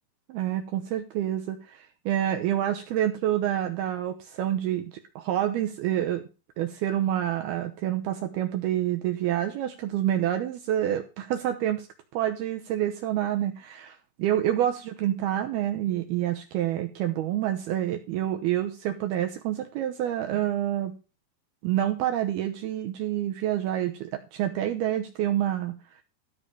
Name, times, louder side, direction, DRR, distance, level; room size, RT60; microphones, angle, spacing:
voice 1, 0.3-6.2 6.6-11.9 12.1-20.9 21.6-25.8, right 11 dB, 85° right, 6 dB, 2.3 m, -28 dB
13.5 x 5.2 x 7.0 m, 0.32 s
omnidirectional pair, 5.5 m